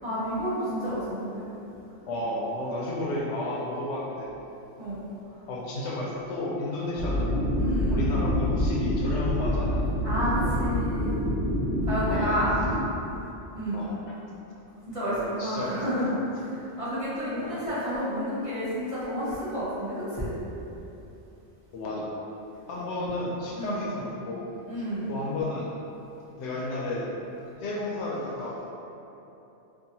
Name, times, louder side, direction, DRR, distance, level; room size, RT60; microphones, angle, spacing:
voice 1, 0.0-1.5 4.8-5.0 7.6-8.2 10.0-11.2 11.9-12.6 13.6-13.8 14.9-16.1 16.5-20.3 23.5-23.8 24.7-25.1, equal, 35° right, -13 dB, 0.7 m, -30 dB
voice 2, 2.1-4.4 5.5-7.4 7.9-9.9 12.1-12.4 13.7-14.0 15.1-15.8 17.4-17.7 21.7-22.2 22.7-24.4 25.1-25.7 26.4-27.1 27.6-28.7, left 1 dB, 75° left, -4 dB, 0.8 m, -32 dB
sound 1, 7.0-12.8, left 1 dB, 60° right, 1.3 m, -26 dB
2.7 x 2.5 x 2.7 m, 2.9 s
omnidirectional pair, 1.2 m